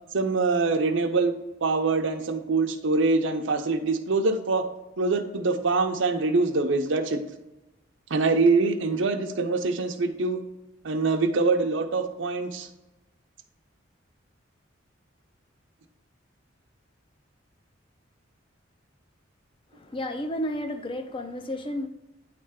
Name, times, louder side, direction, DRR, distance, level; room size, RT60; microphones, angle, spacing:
voice 1, 0.1-1.3 1.6-4.6 5.0-7.2 8.1-10.4 10.8-12.7, right 3 dB, 70° right, 6 dB, 0.6 m, -24 dB
voice 2, 19.7-21.9, left 1 dB, 25° left, 8 dB, 0.5 m, -32 dB
9.4 x 3.3 x 3.6 m, 0.97 s
head